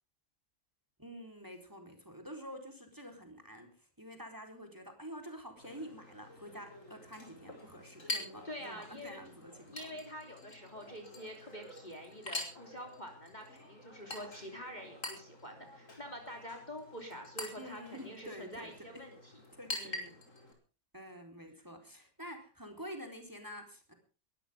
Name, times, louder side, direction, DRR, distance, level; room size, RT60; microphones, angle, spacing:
voice 1, 1.0-9.9 17.5-19.0 19.6-20.2 20.9-23.9, equal, 10° right, 5 dB, 4.2 m, -48 dB
Chink clink, 5.6-20.5, left 2 dB, 50° left, 5.6 m, -46 dB
voice 2, 8.4-9.2 9.7-19.3 19.8-20.1, equal, 25° left, 3 dB, 3.3 m, -46 dB
22.5 x 14.0 x 3.7 m, 0.35 s
omnidirectional pair, 1.8 m